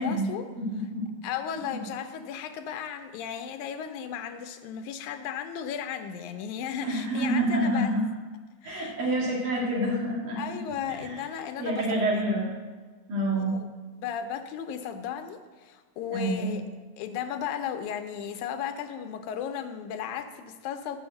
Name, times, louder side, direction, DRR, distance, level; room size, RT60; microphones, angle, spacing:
voice 1, 0.0-0.5 1.2-7.9 8.6-9.0 10.4-12.0 13.4-13.7 14.0-16.6 17.0-21.0, left 8 dB, 85° left, 8 dB, 2.1 m, -35 dB
voice 2, 0.6-1.1 1.6-1.8 6.8-8.0 8.6-10.4 10.9-11.2 11.6-12.5 13.1-13.6 16.1-16.5, right 1 dB, 85° right, -4 dB, 3.9 m, -28 dB
7.1 x 6.4 x 7.7 m, 1.4 s
omnidirectional pair, 3.4 m